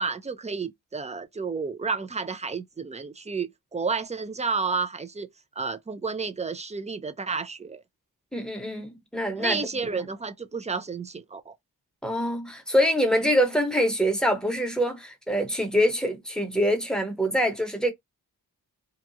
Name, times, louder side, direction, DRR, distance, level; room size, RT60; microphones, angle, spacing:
voice 1, 0.0-5.3 5.6-7.8 9.4-11.5, right 4 dB, 20° right, 0.4 m, -31 dB
voice 2, 8.3-9.6 12.0-17.9, equal, ahead, 1.0 m, -25 dB
2.8 x 2.3 x 2.7 m
cardioid pair, 60°, 40 cm